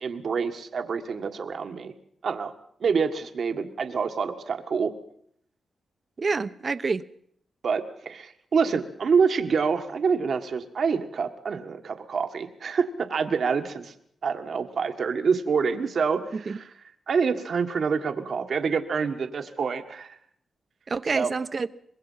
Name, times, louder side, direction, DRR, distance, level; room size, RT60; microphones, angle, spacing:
voice 1, 0.0-1.9 2.2-2.5 2.8-4.9 7.6-13.9 14.2-16.6 17.1-20.2 21.1-21.3, right 5 dB, 65° right, 1.6 m, -26 dB
voice 2, 6.2-7.0 16.3-16.6 20.9-21.7, right 4 dB, 45° right, 0.9 m, -27 dB
24.5 x 21.0 x 5.7 m
cardioid pair, 80°, 0 cm